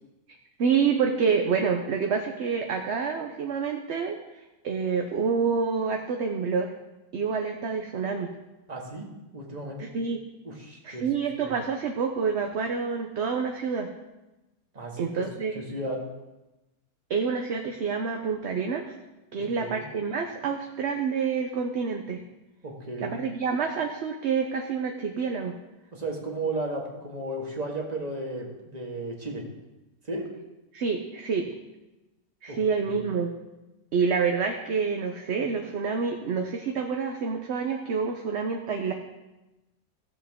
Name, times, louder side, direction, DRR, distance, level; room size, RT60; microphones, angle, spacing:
voice 1, 0.6-6.7 7.1-8.3 9.8-10.2 10.8-13.9 15.0-15.6 17.1-18.9 19.3-22.2 23.0-25.5 30.7-31.5 32.4-33.3 33.9-38.9, right 5 dB, 55° right, 3 dB, 0.9 m, -28 dB
voice 2, 8.7-9.9 10.4-11.1 11.4-11.5 14.8-15.1 15.5-16.0 19.4-19.9 22.6-23.2 25.9-29.5 30.1-30.3 32.5-32.6 32.9-33.1, right 2 dB, 30° right, 0 dB, 1.7 m, -34 dB
16.0 x 7.2 x 3.6 m, 1.0 s
omnidirectional pair, 1.5 m